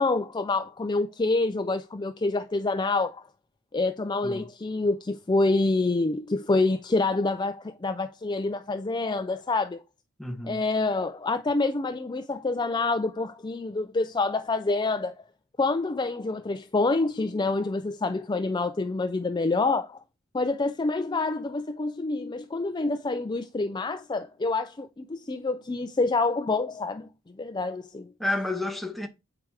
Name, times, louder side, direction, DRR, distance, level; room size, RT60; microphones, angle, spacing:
voice 1, 0.0-3.2 3.7-9.8 10.5-15.1 15.6-20.0 20.3-27.1 27.4-28.1, left 3 dB, 20° left, 0.4 m, -27 dB
voice 2, 10.2-10.6 28.2-29.1, left 2 dB, ahead, 1.0 m, -30 dB
8.6 x 4.9 x 4.7 m
head